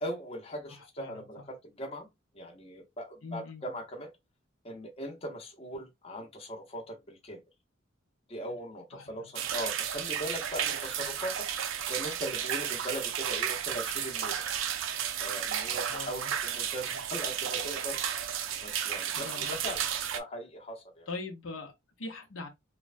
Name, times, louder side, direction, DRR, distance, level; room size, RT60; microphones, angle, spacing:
voice 1, 0.0-2.1 2.3-4.1 4.6-7.4 8.3-14.4 15.2-18.0 18.5-19.9 20.1-21.1, right 1 dB, 30° left, 0.7 m, -40 dB
voice 2, 0.7-1.4 3.2-3.6 8.9-9.3 15.9-16.3 19.1-19.6 21.1-22.5, left 3 dB, 70° left, 0.7 m, -42 dB
sound 1, 9.4-20.2, right 9 dB, 75° right, 0.4 m, -33 dB
3.0 x 2.1 x 2.4 m
head